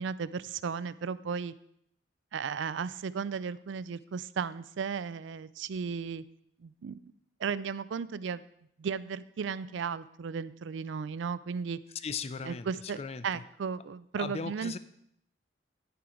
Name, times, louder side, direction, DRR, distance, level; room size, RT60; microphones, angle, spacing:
voice 1, 0.0-1.5 2.3-6.2 6.6-7.1 7.4-8.4 8.8-11.8 12.4-14.8, right 6 dB, 75° right, 16 dB, 0.4 m, -35 dB
voice 2, 11.9-13.4 14.2-14.8, left 5 dB, 30° left, 14 dB, 0.4 m, -38 dB
13.0 x 4.6 x 4.9 m, 0.74 s
head